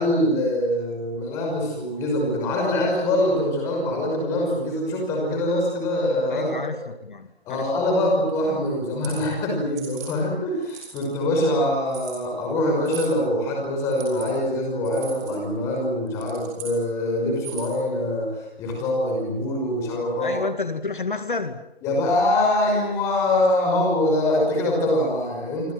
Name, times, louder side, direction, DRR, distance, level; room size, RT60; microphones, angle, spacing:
voice 1, 0.0-6.5 7.5-20.4 21.8-25.7, left 1 dB, 10° left, 0 dB, 5.9 m, -24 dB
voice 2, 6.3-7.7 20.2-21.6, left 4 dB, 50° left, 9 dB, 2.3 m, -30 dB
sound 1, 8.8-9.2 9.8-10.1 10.6-11.2 11.9-12.2 12.8-13.1 13.9-14.3 14.8-15.3 16.1-16.8 17.3-17.8, right 8 dB, 15° right, 6.9 m, -39 dB
27.5 x 26.5 x 7.8 m, 0.83 s
figure-of-eight pair, 165°, 31 cm